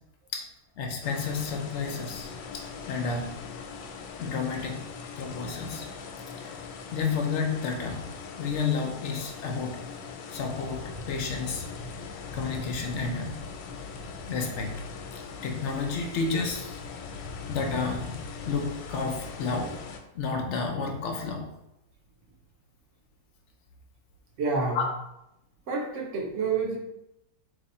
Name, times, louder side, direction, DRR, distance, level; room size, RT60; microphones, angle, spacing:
voice 1, 0.8-2.3 2.5-3.4 4.2-4.8 5.2-5.9 6.4-6.6 6.9-8.1 8.4-9.8 10.3-11.7 12.3-13.4 14.3-14.8 15.4-16.8 17.5-18.1 18.4-19.7 20.1-21.4 24.7-24.8, left 4 dB, 70° left, 2 dB, 0.7 m, -31 dB
sound 1, 1.0-20.0, left 4 dB, 90° left, 1.2 m, -40 dB
voice 2, 24.4-24.9 25.7-26.8, right 4 dB, 60° right, -1 dB, 0.8 m, -28 dB
3.1 x 2.9 x 4.1 m, 0.87 s
omnidirectional pair, 1.8 m